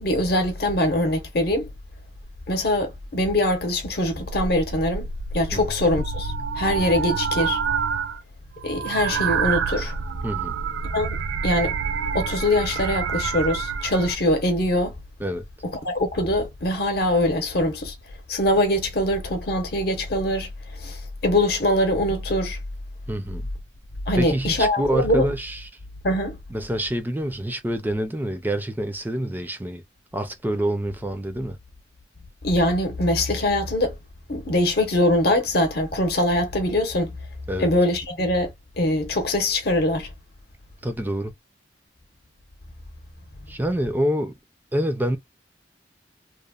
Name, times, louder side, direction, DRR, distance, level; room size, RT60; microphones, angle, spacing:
voice 1, 0.0-1.7 2.5-7.6 8.6-10.0 10.9-11.2 11.4-11.8 12.1-15.0 15.6-17.9 18.3-22.6 24.1-25.3 26.0-26.4 32.4-33.9 34.3-37.1 37.6-40.1, left 1 dB, 55° left, 0.8 m, -23 dB
sound 1, 3.0-3.1 3.5-3.8 4.1-8.2 8.5-14.2, right 5 dB, 85° right, 0.4 m, -28 dB
voice 2, 10.2-10.5 15.2-15.4 23.1-23.4 24.1-25.6 26.5-29.8 30.1-31.6 37.5-37.7 40.8-41.3 43.5-44.3 44.7-45.2, right 1 dB, 10° right, 0.4 m, -26 dB
3.0 x 2.1 x 2.3 m
head